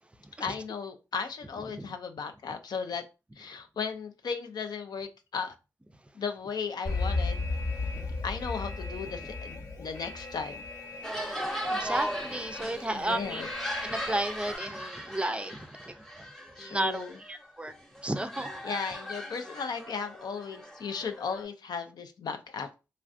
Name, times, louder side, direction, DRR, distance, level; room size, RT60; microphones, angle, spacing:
voice 1, 0.4-3.0 3.4-5.5 6.1-7.4 8.2-10.6 12.6-13.5 16.6-17.2 18.6-22.7, left 5 dB, 75° left, 0.4 m, -36 dB
Alarm, 6.9-14.6, left 3 dB, 55° left, 1.0 m, -36 dB
sound 1, 11.0-17.5 17.7-21.4, equal, 5° left, 0.8 m, -38 dB
voice 2, 11.7-13.4 13.8-16.3 16.6-17.7 18.0-18.5, right 1 dB, 15° right, 0.4 m, -33 dB
3.2 x 2.4 x 2.4 m
cardioid pair, 55°, 7 cm